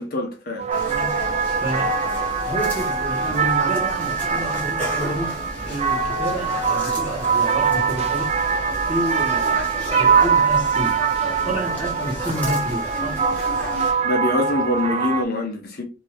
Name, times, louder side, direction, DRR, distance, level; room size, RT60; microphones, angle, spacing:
voice 1, 0.0-0.6 14.0-15.8, left 1 dB, 50° left, 0.7 m, -24 dB
sound 1, 0.6-15.2, right 6 dB, 35° right, 0.3 m, -23 dB
sound 2, 0.7-13.9, equal, 10° left, 1.0 m, -32 dB
voice 2, 0.8-2.0 2.4-8.3 8.8-11.0 11.4-13.2, right 1 dB, 5° right, 1.3 m, -29 dB
2.7 x 2.6 x 3.2 m
head